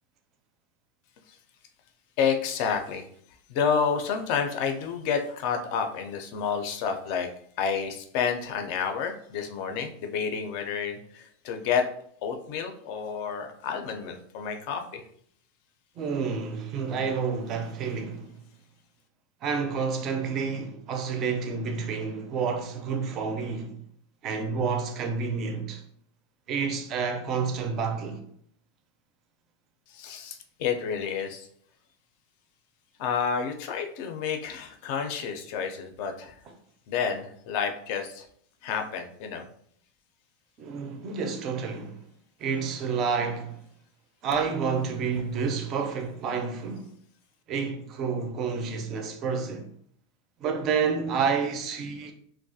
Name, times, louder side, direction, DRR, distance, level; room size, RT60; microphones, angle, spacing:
voice 1, 2.2-3.1 3.5-7.3 7.6-11.8 12.2-15.1 29.9-31.5 33.0-36.4 36.9-38.3 38.6-39.4, left 6 dB, 55° left, 0.4 m, -30 dB
voice 2, 16.0-18.4 19.4-23.7 24.2-25.8 26.5-28.2 40.6-42.0 42.4-43.6 44.2-46.9 47.5-49.7 50.4-52.1, right 5 dB, 35° right, 0.4 m, -29 dB
2.3 x 2.1 x 2.6 m
supercardioid pair, 150°, 0 cm